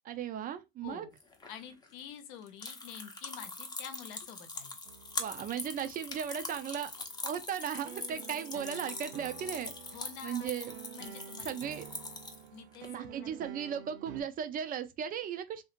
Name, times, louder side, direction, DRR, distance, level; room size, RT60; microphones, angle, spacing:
voice 1, 0.0-1.1 5.2-6.9 7.2-9.7 10.2-10.7 11.4-11.9 12.9-15.6, right 8 dB, 30° right, 0.5 m, -36 dB
voice 2, 0.8-1.1 1.5-4.8 9.9-10.5 10.9-11.7 12.5-13.3, left 8 dB, 60° left, 0.8 m, -48 dB
sound 1, 1.2-12.9, left 3 dB, 15° left, 0.7 m, -43 dB
sound 2, 4.8-14.2, right 9 dB, 70° right, 0.7 m, -49 dB
2.8 x 2.6 x 2.5 m
hypercardioid pair, 100°, 29 cm